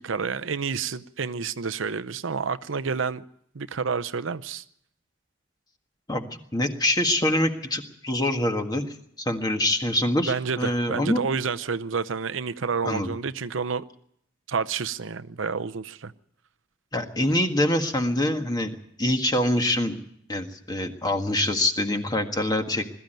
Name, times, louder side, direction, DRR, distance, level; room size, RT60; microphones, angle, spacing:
voice 1, 0.0-3.2 3.5-4.6 10.2-13.8 14.5-16.1, right 5 dB, 85° right, 0.7 m, -29 dB
voice 2, 6.1-11.2 12.8-13.1 16.9-18.7 19.0-20.0 20.3-22.9, left 1 dB, 20° left, 1.7 m, -25 dB
21.0 x 13.5 x 9.1 m
head